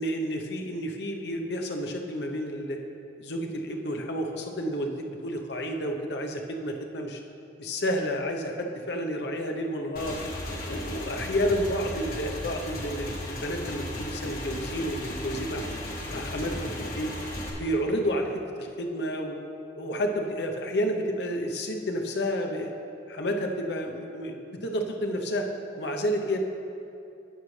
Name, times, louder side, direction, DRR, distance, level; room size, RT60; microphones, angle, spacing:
voice 1, 0.0-2.8 3.2-7.2 7.6-10.2 10.7-15.7 16.1-17.1 17.6-18.3 18.6-19.4 19.7-22.7 23.1-25.5 25.8-26.4, equal, 70° left, 3 dB, 0.8 m, -30 dB
Motorcycle / Engine, 10.0-17.5, left 1 dB, 50° left, 1.6 m, -35 dB
17.0 x 6.3 x 3.3 m, 2.7 s
head